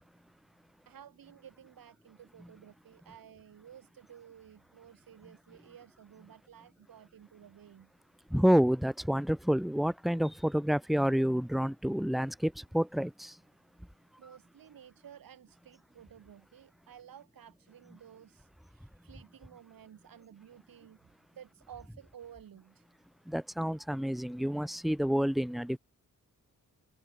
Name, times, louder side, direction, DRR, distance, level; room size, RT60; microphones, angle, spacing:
voice 1, 0.9-7.9 14.2-22.8, right 9 dB, 80° right, 7.3 m, -54 dB
voice 2, 8.3-13.4 23.3-25.8, equal, ahead, 1.3 m, -29 dB
wide cardioid pair, 125°, 34 cm